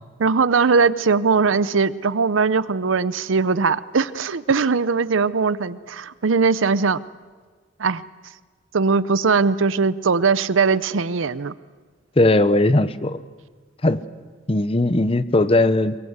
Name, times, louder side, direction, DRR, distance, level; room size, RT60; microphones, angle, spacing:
voice 1, 0.2-7.0 7.8-8.0 8.7-11.5, right 4 dB, 85° right, 17 dB, 0.7 m, -20 dB
voice 2, 12.2-13.2 13.8-14.0 14.5-16.0, left 2 dB, 30° left, 13 dB, 0.8 m, -18 dB
23.0 x 22.5 x 8.1 m, 1.5 s
head